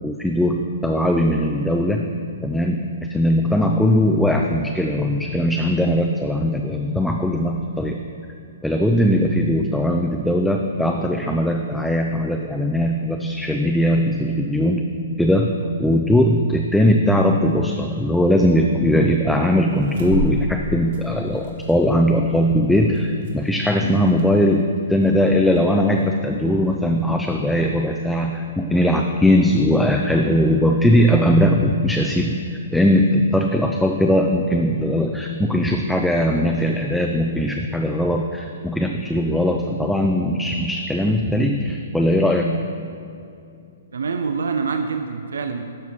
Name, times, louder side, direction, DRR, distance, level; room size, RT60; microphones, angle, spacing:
voice 1, 0.0-2.1 2.4-8.0 8.6-14.9 15.2-32.4 32.7-42.5, equal, ahead, 2 dB, 0.3 m, -19 dB
sound 1, 19.5-27.4, equal, 60° right, 1.6 m, -34 dB
voice 2, 43.9-45.6, right 5 dB, 90° right, 6 dB, 0.5 m, -25 dB
12.0 x 4.7 x 4.2 m, 2.6 s
hypercardioid pair, 150°, 0 cm